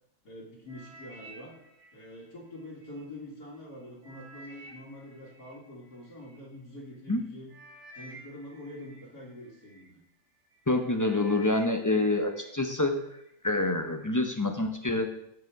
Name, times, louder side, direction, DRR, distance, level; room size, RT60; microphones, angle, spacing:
voice 1, 0.2-1.6 1.9-7.5 8.0-10.0, left 1 dB, 70° left, -4 dB, 2.7 m, -45 dB
sound 1, 0.7-3.0 3.5-6.4 7.1-7.2 7.5-9.9 10.4-10.7 11.0-12.5 12.9-13.3 13.9-14.0, right 1 dB, 90° right, 2.5 m, -52 dB
voice 2, 10.7-12.9 13.4-15.1, left 2 dB, 20° left, 4 dB, 0.6 m, -27 dB
14.5 x 5.1 x 4.8 m, 0.77 s
omnidirectional pair, 1.7 m